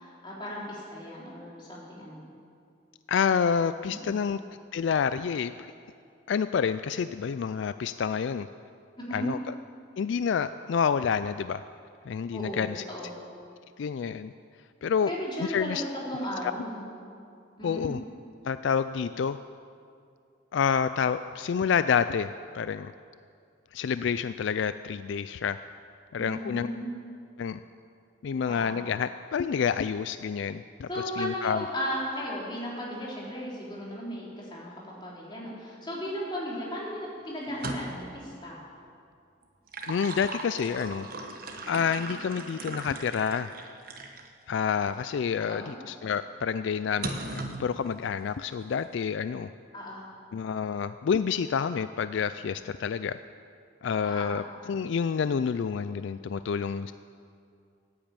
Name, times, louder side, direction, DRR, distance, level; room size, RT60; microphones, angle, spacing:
voice 1, 0.0-2.3 3.8-4.2 9.0-9.3 12.3-13.2 15.1-16.9 17.6-17.9 26.2-26.9 28.5-28.8 30.9-38.6 45.4-45.7 49.7-50.1 54.0-54.4, equal, 25° left, -5 dB, 3.5 m, -36 dB
voice 2, 3.1-4.4 4.7-5.5 6.3-8.5 9.1-9.4 10.0-11.6 12.1-12.8 13.8-14.3 14.8-15.1 15.5-15.8 17.6-18.0 18.4-19.4 20.5-22.3 22.5-22.9 23.7-25.6 26.1-26.7 27.4-27.6 28.2-30.9 31.2-31.6 39.9-41.1 41.7-43.5 44.5-49.5 50.3-53.2 53.8-56.9, left 6 dB, 70° left, 12 dB, 0.3 m, -28 dB
sound 1, 37.5-38.2 39.4-44.3 44.9-45.0 47.0-47.7, right 2 dB, 45° right, 1.2 m, -38 dB
15.0 x 8.7 x 8.9 m, 2.4 s
head